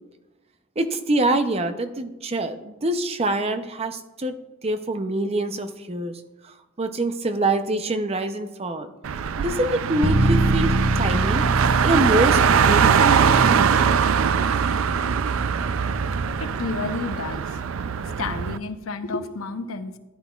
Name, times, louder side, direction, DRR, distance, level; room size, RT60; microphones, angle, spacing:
voice 1, 0.8-4.4 4.6-8.9 9.4-11.5 11.8-13.4, right 2 dB, 30° right, 8 dB, 0.6 m, -25 dB
Car, 9.0-18.6, right 7 dB, 80° right, 0.4 m, -22 dB
Bass guitar, 10.0-16.3, right 2 dB, 65° right, 0.9 m, -25 dB
voice 2, 16.4-17.6 18.2-20.0, left 3 dB, 90° left, 9 dB, 0.7 m, -31 dB
14.0 x 10.5 x 2.4 m, 1.1 s
head